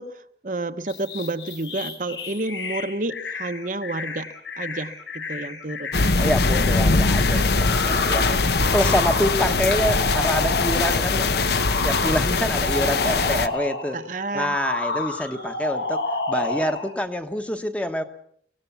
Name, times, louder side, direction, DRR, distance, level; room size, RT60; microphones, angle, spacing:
voice 1, 0.0-4.3 4.6-5.9 8.3-8.5 13.9-14.6, right 2 dB, 45° right, 8 dB, 0.9 m, -30 dB
sound 1, 0.9-11.0 11.5-13.9 14.4-16.9, left 3 dB, 80° left, 4.7 m, -30 dB
sound 2, 5.9-13.5, left 3 dB, 60° left, 0.8 m, -21 dB
voice 2, 6.2-8.4 8.7-11.4 11.8-14.0 14.3-18.0, equal, 5° left, 7 dB, 1.0 m, -26 dB
24.5 x 16.5 x 6.9 m, 0.66 s
head